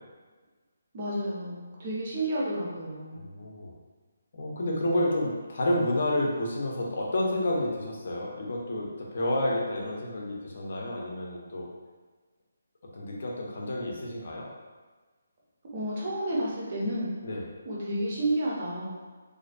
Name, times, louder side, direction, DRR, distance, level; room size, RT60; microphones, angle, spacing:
voice 1, 0.9-3.2 15.7-17.1 17.6-19.0, right 1 dB, 30° right, -5 dB, 0.6 m, -31 dB
voice 2, 3.1-3.7 4.3-11.7 12.9-14.5 17.2-17.4, left 1 dB, 45° left, -3 dB, 0.5 m, -30 dB
2.4 x 2.1 x 2.4 m, 1.4 s
hypercardioid pair, 175°, 0 cm